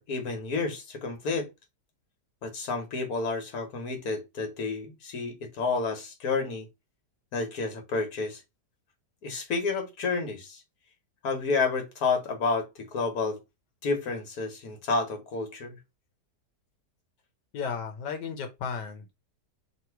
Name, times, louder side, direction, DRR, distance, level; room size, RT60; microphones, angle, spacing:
voice 1, 0.0-1.5 2.4-6.7 7.3-8.4 9.2-10.6 11.2-13.4 13.8-15.8, left 4 dB, 65° left, 1.7 m, -30 dB
voice 2, 17.5-19.1, left 6 dB, 90° left, 1.5 m, -34 dB
3.3 x 3.0 x 4.5 m
omnidirectional pair, 1.8 m